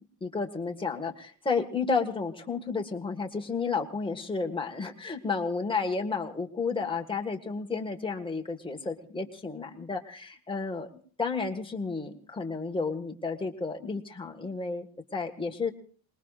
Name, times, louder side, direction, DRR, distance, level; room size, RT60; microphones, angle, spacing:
voice 1, 0.2-10.9 11.2-14.9 15.1-15.7, left 4 dB, 10° left, 1 dB, 1.7 m, -32 dB
27.5 x 21.0 x 2.5 m, 0.43 s
cardioid pair, 135°, 49 cm